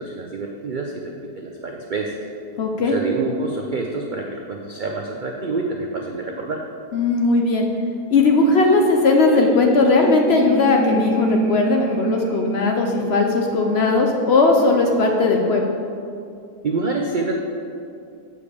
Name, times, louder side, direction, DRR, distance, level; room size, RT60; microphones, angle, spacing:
voice 1, 0.0-2.2 2.8-6.6 16.6-17.3, right 3 dB, 75° right, 1 dB, 0.4 m, -27 dB
voice 2, 2.6-3.0 6.9-7.7 8.1-15.6, left 3 dB, 55° left, 2 dB, 0.8 m, -18 dB
sound 1, 9.1-13.9, right 1 dB, 40° right, 0.8 m, -27 dB
7.1 x 4.8 x 6.9 m, 2.5 s
omnidirectional pair, 1.6 m